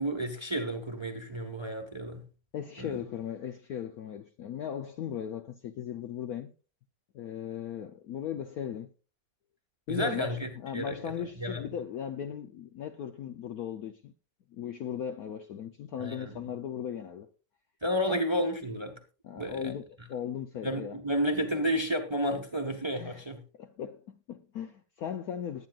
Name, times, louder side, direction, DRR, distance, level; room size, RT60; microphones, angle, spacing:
voice 1, 0.0-2.3 2.8-3.0 9.9-11.7 16.0-16.4 17.8-19.0 19.4-19.8 20.6-23.4, equal, 15° right, 1.0 m, -31 dB
voice 2, 2.5-6.5 7.1-8.9 9.9-14.1 14.5-17.3 18.1-18.2 19.2-21.0 23.0-23.2 23.6-25.7, left 9 dB, 65° left, 0.9 m, -37 dB
20.5 x 9.2 x 2.4 m
omnidirectional pair, 2.2 m